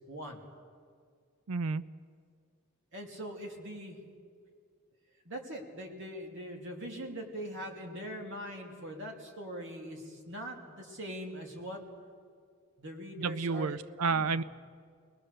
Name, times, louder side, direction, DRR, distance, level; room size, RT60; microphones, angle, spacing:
voice 1, 0.1-0.4 2.9-4.0 5.2-11.8 12.8-13.8 14.1-14.4, equal, 60° right, 1 dB, 2.9 m, -42 dB
voice 2, 1.5-1.8 13.2-14.4, right 4 dB, 85° right, 15 dB, 0.5 m, -30 dB
23.0 x 19.5 x 6.7 m, 2.1 s
head